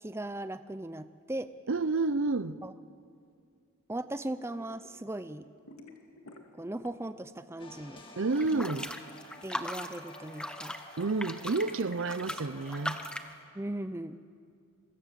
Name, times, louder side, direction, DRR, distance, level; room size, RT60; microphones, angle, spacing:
voice 1, 0.0-1.5 2.6-2.7 3.9-5.5 6.5-8.0 8.5-8.6 9.4-10.7 13.5-14.2, right 1 dB, 10° right, 0.5 m, -38 dB
voice 2, 1.7-2.6 8.2-8.9 11.0-13.0, right 3 dB, 60° right, 0.6 m, -30 dB
sound 1, 4.2-4.9 5.2-7.2 7.5-9.7, left 2 dB, 75° left, 2.4 m, -54 dB
sound 2, 7.6-13.1, left 2 dB, 25° left, 2.2 m, -51 dB
sound 3, 8.3-13.3, left 1 dB, 5° left, 1.0 m, -39 dB
25.5 x 24.0 x 7.6 m
head